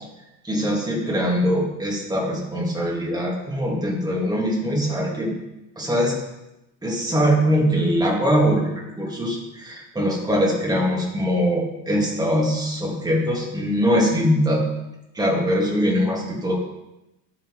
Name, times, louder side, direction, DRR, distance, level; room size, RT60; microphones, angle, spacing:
voice 1, 0.4-5.3 5.8-6.1 6.8-8.7 9.0-14.6 15.1-16.5, equal, 10° right, -3 dB, 1.8 m, -22 dB
11.5 x 3.9 x 3.1 m, 0.93 s
cardioid pair, 130°, 37 cm